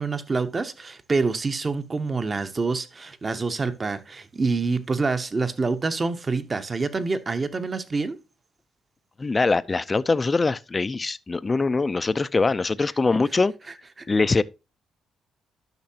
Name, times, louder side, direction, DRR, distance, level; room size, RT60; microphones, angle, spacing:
voice 1, 0.0-8.2 14.0-14.1, right 4 dB, 30° right, 0.9 m, -26 dB
voice 2, 9.2-13.5 14.1-14.4, left 3 dB, 25° left, 0.4 m, -23 dB
12.0 x 5.8 x 2.8 m
cardioid pair, 90°, 0 cm